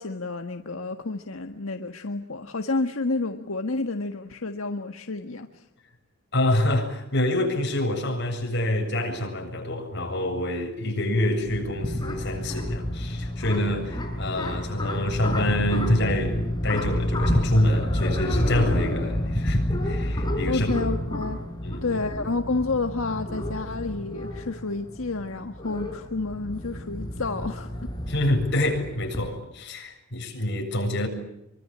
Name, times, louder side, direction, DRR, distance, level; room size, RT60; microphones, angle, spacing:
voice 1, 0.0-5.6 20.5-21.4 21.8-27.9, left 3 dB, 90° left, 1.6 m, -30 dB
voice 2, 6.3-20.7 21.6-22.0 28.1-31.1, left 1 dB, 55° left, 7.5 m, -26 dB
sound 1, 11.1-29.3, left 1 dB, 20° left, 4.9 m, -29 dB
26.5 x 24.5 x 8.8 m
head